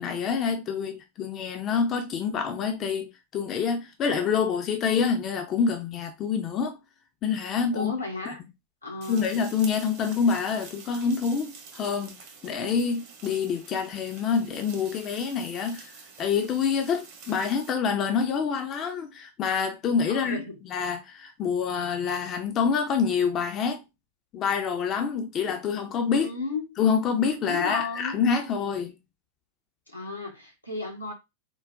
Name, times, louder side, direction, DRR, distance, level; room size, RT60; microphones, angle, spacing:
voice 1, 0.0-6.8 7.2-7.9 8.3-8.4 9.1-12.2 12.4-15.9 16.2-23.8 24.3-26.3 26.8-28.9, left 6 dB, 30° left, 0.5 m, -27 dB
voice 2, 7.7-8.4 8.8-9.4 20.1-20.6 26.2-26.7 27.4-28.2 29.9-31.1, left 3 dB, 90° left, 1.0 m, -34 dB
sound 1, 9.0-17.7, right 5 dB, 50° right, 0.9 m, -47 dB
3.7 x 2.1 x 2.4 m
figure-of-eight pair, 90°, 0 cm